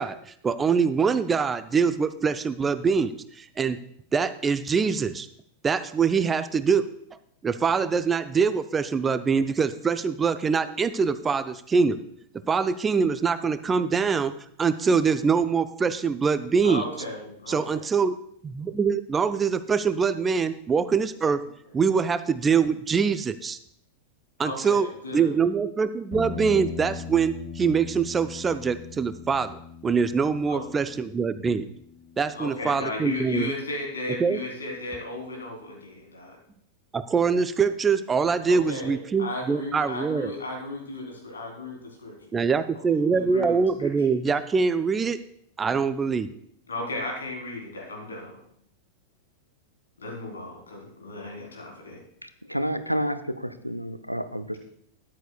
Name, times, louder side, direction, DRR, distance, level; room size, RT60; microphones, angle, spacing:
voice 1, 0.0-3.8 4.1-5.3 5.6-6.9 7.4-12.0 12.5-14.3 14.6-16.8 17.5-18.2 18.4-21.4 21.7-23.6 24.4-24.9 25.1-31.7 32.2-33.5 34.2-34.4 36.9-40.3 42.3-45.2 45.6-46.3, right 5 dB, 20° right, 12 dB, 0.4 m, -24 dB
voice 2, 16.6-17.9 24.4-25.4 30.5-30.6 32.3-36.4 38.5-42.3 42.7-43.5 43.8-43.9 46.7-48.4 50.0-52.0, left 2 dB, 70° left, -1 dB, 3.5 m, -35 dB
sound 1, 26.1-34.4, left 6 dB, 30° left, 2.7 m, -41 dB
voice 3, 52.2-54.5, equal, 90° right, 10 dB, 0.6 m, -30 dB
13.0 x 10.5 x 2.3 m, 0.67 s
figure-of-eight pair, 90°, 0 cm